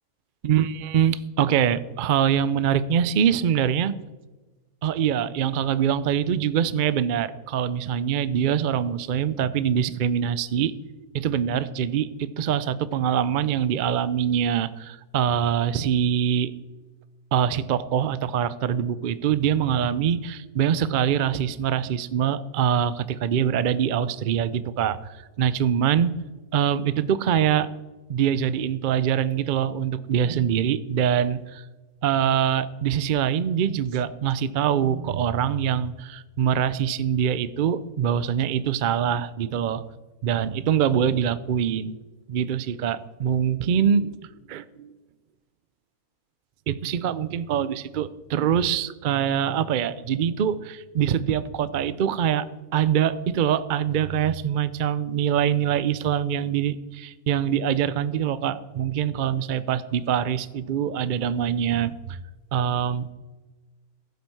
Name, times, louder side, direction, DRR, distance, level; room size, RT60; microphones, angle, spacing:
voice 1, 0.4-3.9 4.8-10.7 11.1-16.5 17.3-26.1 26.5-27.7 28.1-31.6 32.0-39.8 40.2-42.0 42.3-44.1 44.5-44.9 46.7-52.5 52.7-62.2 62.5-63.1, right 9 dB, 75° right, 15 dB, 0.4 m, -24 dB
15.0 x 8.2 x 4.6 m, 1.2 s
omnidirectional pair, 1.6 m